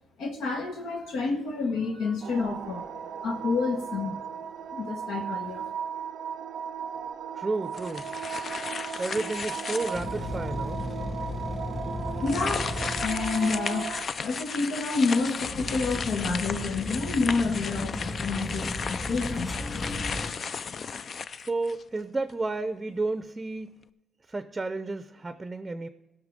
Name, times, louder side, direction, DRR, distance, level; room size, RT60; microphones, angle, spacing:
voice 1, 0.2-4.2 4.7-5.7 12.2-12.7 13.0-13.9 14.2-19.5, left 4 dB, 85° left, 2 dB, 1.3 m, -29 dB
sound 1, 2.2-14.1, right 7 dB, 70° right, 0.5 m, -36 dB
voice 2, 7.3-8.1 9.0-10.8 21.3-23.7 24.3-25.9, right 3 dB, 20° right, 11 dB, 0.6 m, -32 dB
sound 2, 7.7-10.3 10.8-10.9 12.2-22.0, left 5 dB, 45° left, 0.4 m, -35 dB
sound 3, 9.9-20.3, left 1 dB, 30° left, 2.6 m, -35 dB
16.0 x 5.8 x 5.1 m, 1.1 s
cardioid pair, 90°, 0 cm